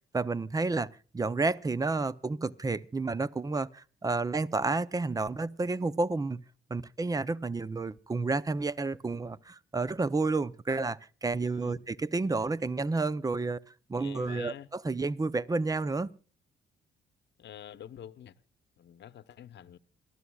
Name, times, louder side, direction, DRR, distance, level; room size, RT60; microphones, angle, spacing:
voice 1, 0.1-0.9 1.1-6.4 6.7-13.6 13.9-16.1, right 3 dB, 20° right, 0.6 m, -30 dB
voice 2, 11.4-11.9 13.9-14.7 17.4-18.3 18.8-19.8, left 10 dB, 60° left, 0.9 m, -47 dB
27.5 x 13.0 x 2.3 m
cardioid pair, 90°, 20 cm